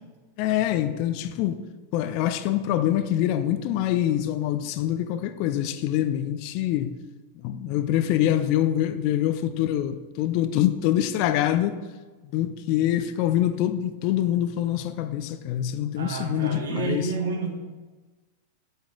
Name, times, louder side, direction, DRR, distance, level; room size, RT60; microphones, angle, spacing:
voice 1, 0.4-1.6 1.9-6.9 7.3-11.8 12.3-17.1, left 12 dB, 45° left, 11 dB, 0.6 m, -25 dB
voice 2, 16.0-17.5, right 4 dB, 65° right, 1 dB, 1.8 m, -29 dB
10.0 x 8.0 x 3.8 m, 1.3 s
figure-of-eight pair, 90°, 0 cm